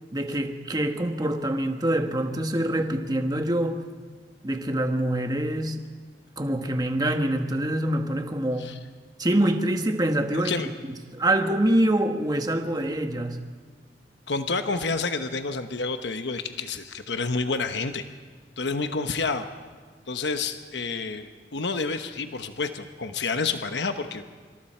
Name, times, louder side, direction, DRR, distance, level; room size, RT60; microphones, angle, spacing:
voice 1, 0.1-3.8 4.4-5.8 6.4-8.7 9.2-10.5 11.1-13.4, right 1 dB, 20° right, 5 dB, 1.3 m, -25 dB
voice 2, 10.3-10.7 14.3-18.0 18.6-19.5 20.1-24.2, left 4 dB, 75° left, 8 dB, 1.0 m, -29 dB
25.5 x 25.5 x 4.5 m, 1.5 s
head